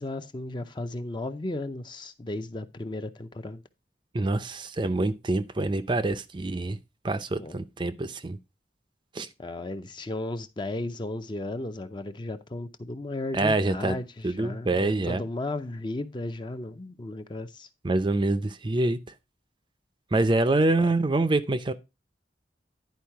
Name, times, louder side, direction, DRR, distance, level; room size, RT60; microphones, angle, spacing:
voice 1, 0.0-3.6 7.3-7.6 9.4-17.7 20.7-20.9, left 2 dB, 25° left, 0.6 m, -35 dB
voice 2, 4.1-6.8 7.0-8.4 9.1-9.3 13.3-14.0 14.2-15.2 17.8-19.0 20.1-21.7, right 2 dB, 25° right, 0.5 m, -25 dB
10.5 x 4.6 x 4.6 m
head